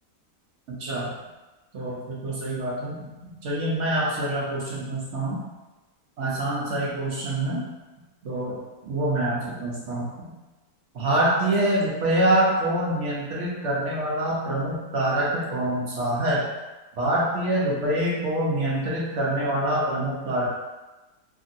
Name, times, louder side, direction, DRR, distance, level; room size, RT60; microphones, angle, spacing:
voice 1, 1.7-5.4 6.2-7.6 8.2-8.5 8.8-10.3 10.9-16.4 17.0-20.5, right 1 dB, 60° right, -6 dB, 0.8 m, -25 dB
2.9 x 2.6 x 2.5 m, 1.1 s
omnidirectional pair, 1.8 m